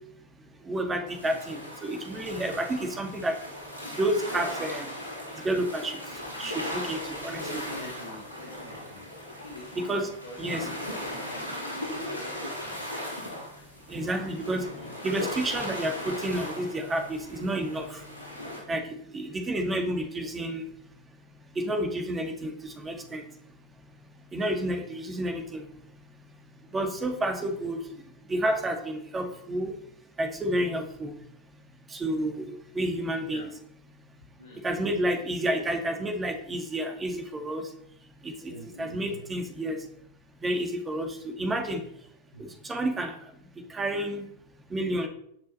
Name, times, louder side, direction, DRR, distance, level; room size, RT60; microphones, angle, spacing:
voice 1, 0.6-3.4 4.0-4.9 5.4-6.0 6.4-7.6 9.7-10.1 10.4-10.7 13.9-14.7 15.0-18.0 18.7-20.7 21.6-23.2 24.3-25.6 26.7-27.8 28.3-29.7 30.2-31.1 31.9-33.5 34.6-37.7 38.2-38.5 38.8-39.8 40.4-41.8 42.4-43.1 43.7-44.2 44.7-45.1, right 1 dB, 15° right, 5 dB, 2.2 m, -30 dB
sound 1, 1.1-18.6, left 1 dB, 85° right, 3.8 m, -38 dB
voice 2, 7.4-10.6 11.2-12.8 33.2-33.5 34.4-34.6 38.4-39.3 41.4-41.5 42.3-42.5, left 1 dB, 75° left, -4 dB, 2.9 m, -45 dB
18.0 x 6.2 x 4.3 m, 0.69 s
figure-of-eight pair, 90°, 0 cm